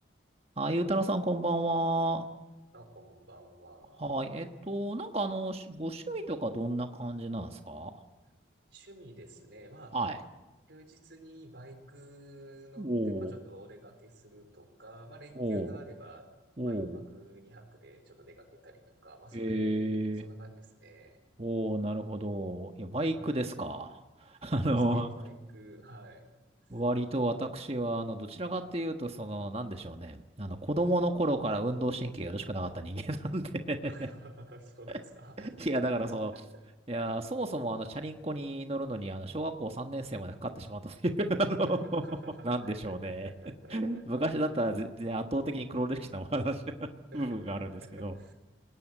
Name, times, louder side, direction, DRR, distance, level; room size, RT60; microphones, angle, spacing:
voice 1, 0.6-2.3 4.0-7.9 9.9-10.2 12.8-13.3 15.4-15.7 16.6-17.0 19.3-20.2 21.4-25.1 26.7-33.9 35.6-36.3 36.9-42.0 42.4-43.3 43.7-46.9 47.1-47.7 48.0-48.1, right 1 dB, 30° right, 5 dB, 1.3 m, -32 dB
voice 2, 2.7-4.1 8.7-10.0 10.7-21.2 23.1-23.5 24.7-26.3 26.7-26.8 33.8-35.5 35.8-36.6 41.7-44.6 47.1-48.3, right 1 dB, 65° right, 5 dB, 4.4 m, -51 dB
28.0 x 18.5 x 9.2 m, 1.1 s
head